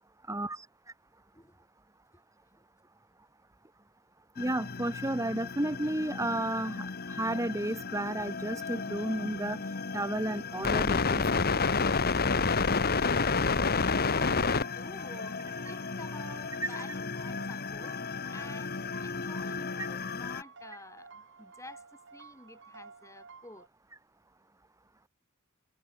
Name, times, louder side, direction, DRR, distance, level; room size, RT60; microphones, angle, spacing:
voice 1, 0.3-0.7 4.4-11.4 19.8-19.9, right 1 dB, 15° right, 1.5 m, -33 dB
sound 1, 4.4-20.4, left 4 dB, 45° left, 1.2 m, -31 dB
sound 2, 12.2-23.7, right 4 dB, 60° right, 5.5 m, -52 dB
voice 2, 13.9-23.7, left 2 dB, 15° left, 4.5 m, -50 dB
head